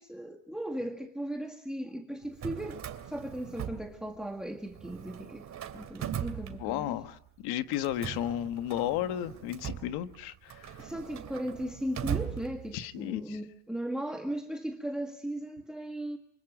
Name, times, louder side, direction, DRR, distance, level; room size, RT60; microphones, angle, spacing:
voice 1, 0.0-5.5 5.7-7.0 10.8-16.2, right 1 dB, ahead, 1.7 m, -37 dB
Drawer open or close, 2.2-4.4 4.7-7.1 7.7-13.0, right 9 dB, 45° right, 2.5 m, -40 dB
voice 2, 6.6-10.9 12.7-13.4, left 12 dB, 75° left, 1.5 m, -34 dB
25.5 x 25.0 x 6.1 m
supercardioid pair, 105°, 38 cm